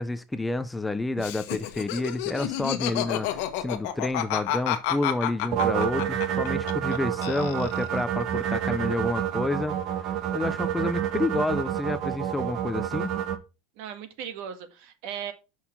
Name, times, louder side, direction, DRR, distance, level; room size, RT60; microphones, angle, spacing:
voice 1, 0.0-13.1, left 2 dB, 5° left, 0.4 m, -29 dB
Laughter, 1.2-7.0 7.2-8.0, left 12 dB, 65° left, 1.4 m, -30 dB
sound 1, 5.5-13.4, right 10 dB, 40° right, 1.0 m, -28 dB
voice 2, 13.8-15.3, right 8 dB, 60° right, 1.5 m, -37 dB
6.4 x 5.6 x 5.8 m
cardioid pair, 165°, 0 cm